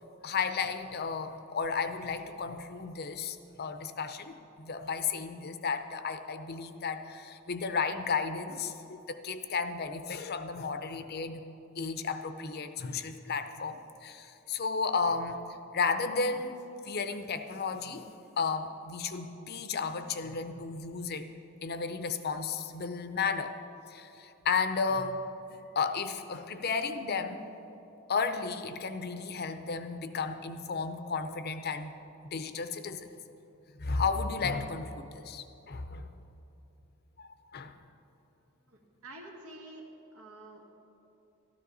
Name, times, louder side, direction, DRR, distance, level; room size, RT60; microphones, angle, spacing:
voice 1, 0.2-11.5 11.8-15.4 15.7-21.3 21.6-23.6 23.9-25.2 25.8-27.5 28.1-31.9 32.2-33.1 33.8-36.1 37.2-37.7, left 5 dB, 45° left, 9 dB, 0.6 m, -33 dB
voice 2, 38.7-39.9 40.1-40.7, right 2 dB, 80° right, 0 dB, 1.8 m, -48 dB
13.0 x 13.0 x 4.0 m, 3.0 s
head